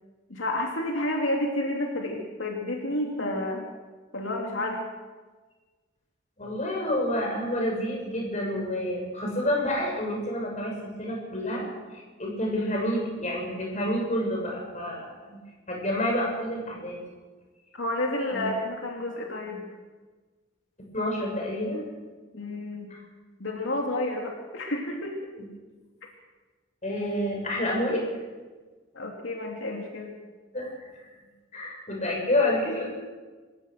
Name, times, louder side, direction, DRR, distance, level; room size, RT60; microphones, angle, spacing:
voice 1, 0.3-3.7 4.1-4.9 17.7-19.6 22.3-22.9 23.4-25.2 28.9-30.1, left 1 dB, 90° left, 0 dB, 2.9 m, -30 dB
voice 2, 6.4-11.7 11.9-15.4 15.7-17.0 18.3-18.5 20.9-21.8 22.9-23.0 25.4-25.5 26.8-28.0 30.5-30.7 31.5-32.9, left 1 dB, 40° left, 0 dB, 6.8 m, -29 dB
27.0 x 16.5 x 6.6 m, 1.3 s
head